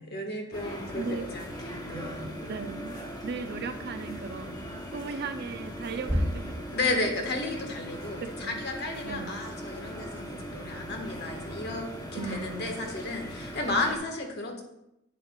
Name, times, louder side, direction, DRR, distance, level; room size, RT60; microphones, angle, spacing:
voice 1, 0.0-2.3 6.7-11.9 12.1-14.6, left 2 dB, 55° left, 2 dB, 1.5 m, -33 dB
sound 1, 0.5-14.0, equal, 20° left, 1.0 m, -40 dB
voice 2, 0.9-1.3 2.5-6.6 8.2-8.6 9.0-9.3 12.2-12.8, right 4 dB, 50° right, 8 dB, 0.5 m, -37 dB
sound 2, 4.0-4.9 5.3-5.6 6.0-7.6 8.9-9.9 10.7-12.0, equal, 15° right, 0.7 m, -36 dB
10.0 x 9.6 x 2.4 m, 0.85 s
head